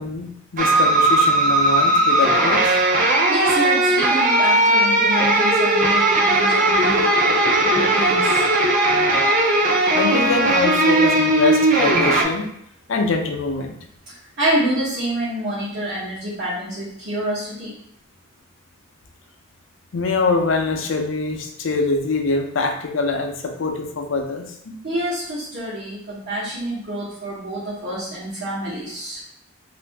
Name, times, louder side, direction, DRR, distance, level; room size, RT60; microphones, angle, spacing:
voice 1, 0.0-2.7 9.9-12.5 12.9-13.7 19.9-24.8, left 3 dB, 80° left, 4 dB, 0.5 m, -24 dB
sound 1, 0.6-12.2, right 2 dB, 45° right, 0.4 m, -17 dB
voice 2, 3.3-7.1 7.6-8.3 14.4-17.7 24.8-29.2, right 1 dB, 60° right, -11 dB, 1.0 m, -27 dB
2.6 x 2.5 x 3.3 m, 0.71 s
head